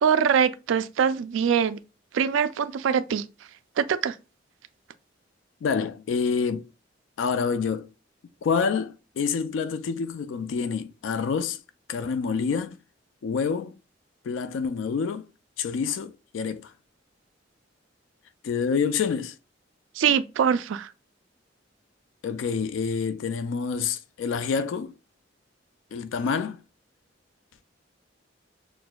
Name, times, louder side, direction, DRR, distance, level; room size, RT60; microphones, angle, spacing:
voice 1, 0.0-1.8 2.1-3.3 3.8-4.2 19.9-20.9, right 7 dB, 80° right, 0.3 m, -23 dB
voice 2, 5.6-6.7 7.2-7.9 8.4-11.6 11.9-12.8 13.2-13.7 14.2-15.3 15.6-16.7 18.4-19.4 22.2-24.9 25.9-26.6, left 5 dB, 80° left, 0.3 m, -27 dB
6.0 x 2.4 x 2.2 m
head